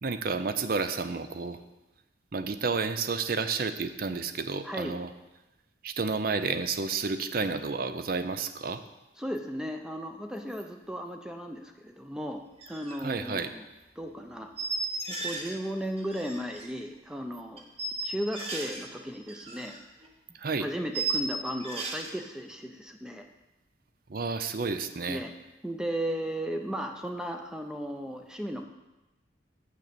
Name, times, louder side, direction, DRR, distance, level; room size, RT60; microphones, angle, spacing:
voice 1, 0.0-1.6 2.3-5.1 5.8-8.8 13.0-13.5 20.3-20.7 24.1-25.2, right 4 dB, 50° right, 10 dB, 0.6 m, -31 dB
voice 2, 4.6-5.0 9.2-12.4 12.7-13.7 14.0-14.5 15.2-17.6 18.0-19.7 20.6-23.2 25.1-25.3 25.6-28.6, equal, 5° right, 4 dB, 0.5 m, -35 dB
sound 1, 12.6-13.0 13.2-13.4 14.6-15.6 15.8-16.7 17.6-18.8 19.1-19.8 20.0-20.1 20.9-22.1, right 3 dB, 30° right, 1.1 m, -34 dB
7.4 x 6.6 x 6.8 m, 1.0 s
head